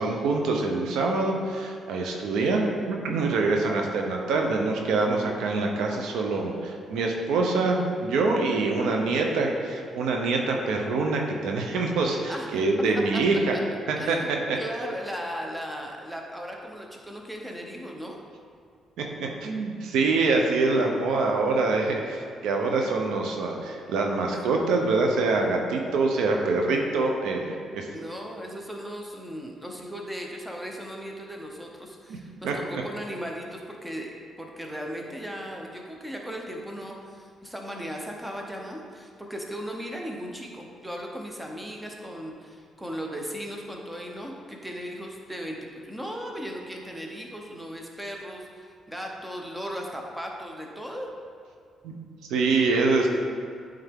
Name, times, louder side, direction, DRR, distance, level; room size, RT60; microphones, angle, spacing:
voice 1, 0.0-13.5 13.9-14.6 19.0-27.9 32.4-32.5 51.8-51.9 52.3-53.1, right 3 dB, 85° right, 1 dB, 0.7 m, -25 dB
voice 2, 14.0-18.2 27.9-45.6 45.8-51.1, equal, 5° right, 0 dB, 0.9 m, -37 dB
9.0 x 3.5 x 3.6 m, 2.3 s
cardioid pair, 90°, 0 cm